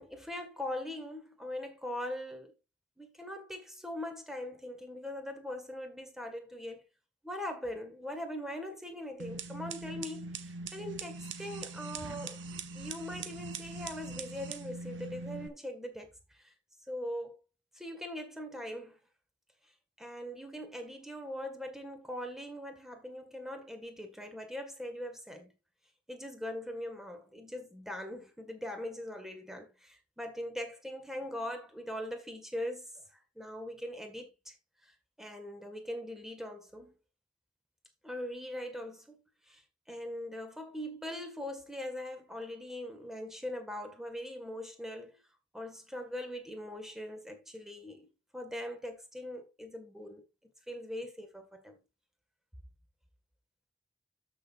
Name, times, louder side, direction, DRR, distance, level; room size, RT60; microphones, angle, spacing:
voice 1, 0.0-2.5 3.0-6.8 7.2-12.4 12.7-16.5 16.9-17.4 17.7-19.0 20.0-25.5 26.1-34.6 34.8-37.0 38.0-39.2 39.5-39.6 39.9-45.2 45.5-48.1 48.3-51.8, left 1 dB, ahead, 1.9 m, -41 dB
sound 1, 9.2-15.5, right 3 dB, 70° right, 1.1 m, -42 dB
13.0 x 6.3 x 2.6 m
head